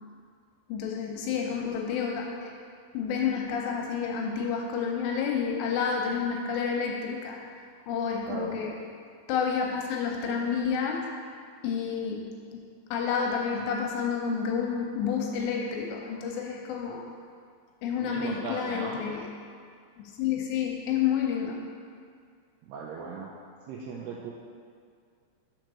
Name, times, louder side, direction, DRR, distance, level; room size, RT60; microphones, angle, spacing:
voice 1, 0.7-2.5 2.9-7.4 7.9-8.7 9.3-11.1 11.6-12.6 12.9-17.1 17.8-19.2 20.0-21.6, left 6 dB, 80° left, 0 dB, 2.7 m, -29 dB
voice 2, 8.3-8.6 16.1-16.2 18.0-19.0 22.6-23.3 23.7-24.3, right 4 dB, 80° right, -3 dB, 2.3 m, -38 dB
6.4 x 4.5 x 6.1 m, 2.2 s
omnidirectional pair, 5.2 m